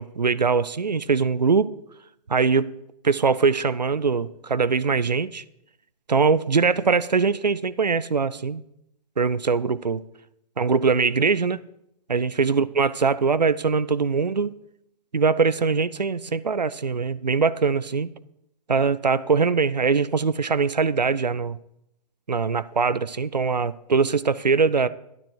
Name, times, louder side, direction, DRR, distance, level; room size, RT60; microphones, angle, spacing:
voice 1, 0.0-1.7 2.3-2.7 3.0-5.4 6.1-8.6 9.2-10.0 10.6-11.6 12.1-14.5 15.1-18.1 18.7-21.6 22.3-24.9, right 5 dB, 80° right, 0.5 m, -22 dB
11.5 x 10.0 x 4.5 m
figure-of-eight pair, 125°, 21 cm